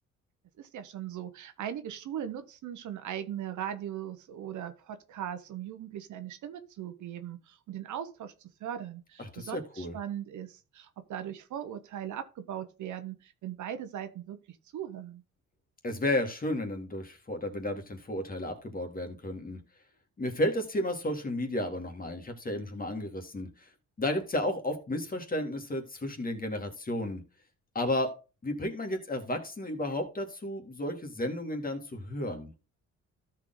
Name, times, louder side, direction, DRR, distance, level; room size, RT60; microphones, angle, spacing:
voice 1, 0.6-15.2, right 10 dB, 75° right, 1.2 m, -39 dB
voice 2, 9.2-10.0 15.8-19.6 20.2-23.7 24.0-27.2 27.7-28.1 28.4-32.5, left 1 dB, 30° left, 2.5 m, -33 dB
13.5 x 4.6 x 4.0 m
cardioid pair, 90°, 30 cm